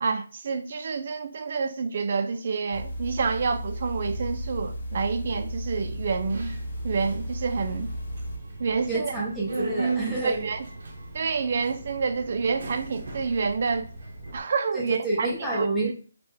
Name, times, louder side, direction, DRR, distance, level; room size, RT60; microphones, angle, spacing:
voice 1, 0.0-6.5 6.8-7.9 8.6-9.1 10.2-10.7 11.1-13.9 14.3-15.3 15.5-15.7, right 5 dB, 40° right, 0.4 m, -28 dB
sound 1, 2.7-8.4, equal, 50° left, 1.1 m, -34 dB
Subway metro underground, 6.3-14.4, right 3 dB, 60° right, 0.8 m, -37 dB
voice 2, 8.9-10.5 14.7-15.9, right 2 dB, ahead, 0.7 m, -28 dB
3.4 x 2.1 x 4.3 m
hypercardioid pair, 170°, 0 cm